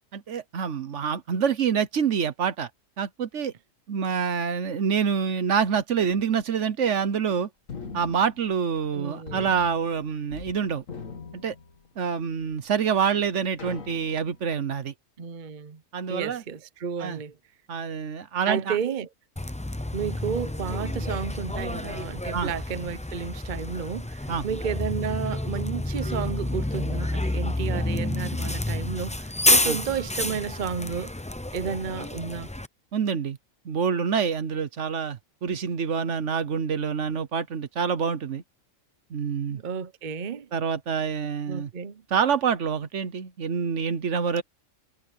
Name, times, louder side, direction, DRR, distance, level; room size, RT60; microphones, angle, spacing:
voice 1, 0.1-2.7 3.0-3.5 3.9-7.5 7.9-10.8 11.3-11.5 12.0-14.9 15.9-16.4 17.0-17.2 17.7-18.8 22.3-22.5 24.3-24.5 29.6-29.8 32.9-33.4 33.6-38.4 39.1-39.6 40.5-41.7 42.1-44.4, right 6 dB, 65° right, 1.2 m, -26 dB
sound 1, 7.7-8.9 9.3-10.6 10.8-12.1 12.7-12.8 13.6-14.4, left 5 dB, 75° left, 2.2 m, -41 dB
voice 2, 8.9-9.5 15.2-15.8 16.1-17.3 18.4-19.1 19.9-31.1 31.5-32.5 39.5-40.5 41.5-42.0, right 6 dB, 40° right, 0.9 m, -32 dB
Bus, 19.4-32.7, left 1 dB, 10° left, 0.4 m, -29 dB
omnidirectional pair, 1.4 m